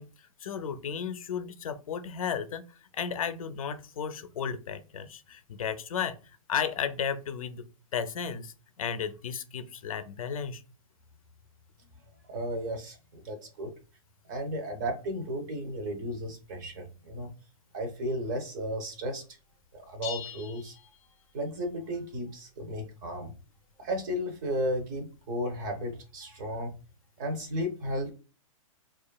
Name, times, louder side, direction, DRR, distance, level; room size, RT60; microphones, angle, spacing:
voice 1, 0.0-6.2 6.5-7.7 7.9-10.6, left 7 dB, 80° left, 10 dB, 0.5 m, -34 dB
voice 2, 12.3-13.7 14.3-17.3 17.7-19.2 19.7-20.8 21.3-23.3 23.8-26.7 27.2-28.1, equal, 35° right, 6 dB, 0.6 m, -34 dB
sound 1, 20.0-21.6, left 10 dB, 20° left, 0.4 m, -43 dB
2.9 x 2.3 x 2.2 m, 0.34 s
hypercardioid pair, 160°, 18 cm